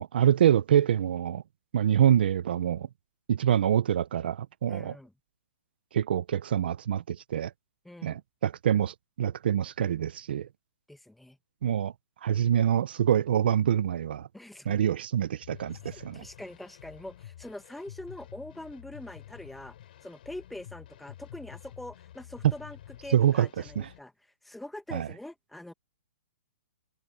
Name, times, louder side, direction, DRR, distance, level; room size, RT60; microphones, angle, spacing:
voice 1, 0.0-1.4 1.7-2.9 3.3-5.0 5.9-7.5 8.0-10.5 11.6-11.9 12.2-14.3 14.7-16.2 23.1-23.5 23.8-23.9 24.9-25.1, right 10 dB, 45° right, 0.7 m, -25 dB
voice 2, 4.7-5.1 7.8-8.2 10.9-11.4 14.3-14.8 15.8-19.8 20.0-24.1 24.4-25.7, left 1 dB, ahead, 1.2 m, -44 dB
sound 1, 15.4-24.0, left 12 dB, 40° left, 7.8 m, -49 dB
hypercardioid pair, 175°, 7 cm